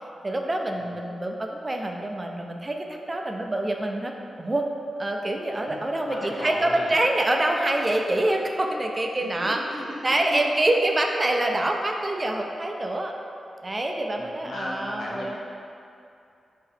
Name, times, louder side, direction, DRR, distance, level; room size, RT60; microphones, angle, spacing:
voice 1, 0.2-4.1 4.4-4.7 5.0-9.6 10.0-13.1 13.6-15.4, right 1 dB, 30° right, 2 dB, 0.3 m, -26 dB
voice 2, 5.7-6.9 9.2-10.4 14.2-15.4, left 1 dB, 80° left, -6 dB, 0.7 m, -37 dB
3.9 x 2.7 x 2.7 m, 2.6 s
cardioid pair, 55°, 0 cm